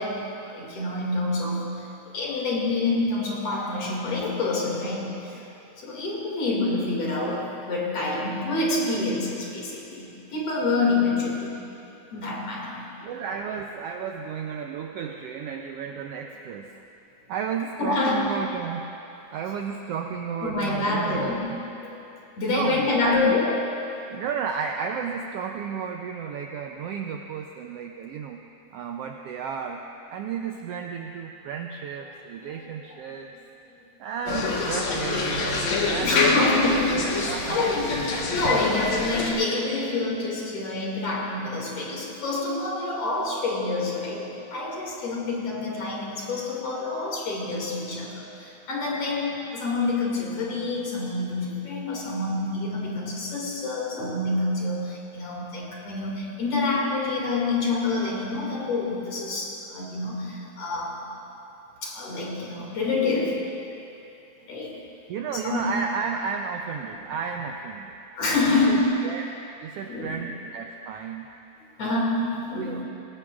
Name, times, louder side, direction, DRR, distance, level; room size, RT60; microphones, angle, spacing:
voice 1, 0.0-1.8 2.1-5.4 5.8-11.6 12.1-12.9 17.8-18.4 20.4-22.0 22.4-23.6 32.4-32.6 33.2-33.3 36.0-61.0 61.8-63.5 64.5-64.8 65.3-65.6 66.9-67.0 68.2-69.0 69.9-70.1 71.8-72.8, left 3 dB, 55° left, -3 dB, 3.3 m, -27 dB
voice 2, 13.0-16.7 17.3-18.9 19.3-21.4 22.4-23.4 24.1-28.4 28.7-29.8 30.1-33.3 34.0-36.5 37.2-37.8 64.8-67.9 68.5-69.2 69.6-71.3 72.6-72.8, right 6 dB, 85° right, 3 dB, 1.3 m, -33 dB
sound 1, 34.3-39.3, left 3 dB, 75° left, 2.6 m, -26 dB
21.0 x 17.5 x 2.5 m, 3.0 s
omnidirectional pair, 3.4 m